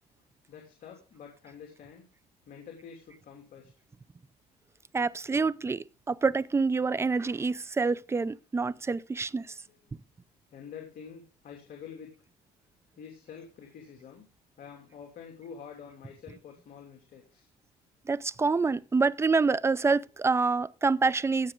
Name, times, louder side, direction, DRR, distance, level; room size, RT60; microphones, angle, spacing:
voice 1, 0.1-2.0 2.4-3.7 9.5-9.8 10.5-12.1 13.0-14.2 14.6-17.5, left 7 dB, 55° left, 2.9 m, -47 dB
voice 2, 4.9-9.6 18.1-21.5, right 4 dB, 15° right, 0.5 m, -27 dB
16.0 x 7.1 x 3.8 m
cardioid pair, 110°, 17 cm